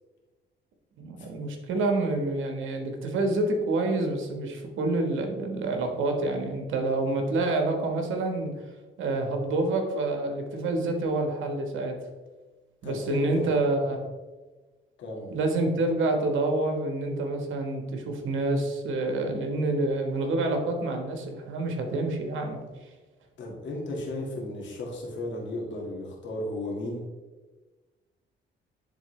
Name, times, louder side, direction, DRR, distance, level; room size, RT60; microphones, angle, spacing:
voice 1, 1.0-8.5 9.0-12.0 12.8-14.0 15.3-22.6, right 2 dB, 80° right, 4 dB, 1.3 m, -27 dB
voice 2, 12.8-13.6 15.0-15.3 23.4-27.1, left 1 dB, 70° left, -2 dB, 2.1 m, -35 dB
10.5 x 3.9 x 3.2 m, 1.2 s
cardioid pair, 90°, 20 cm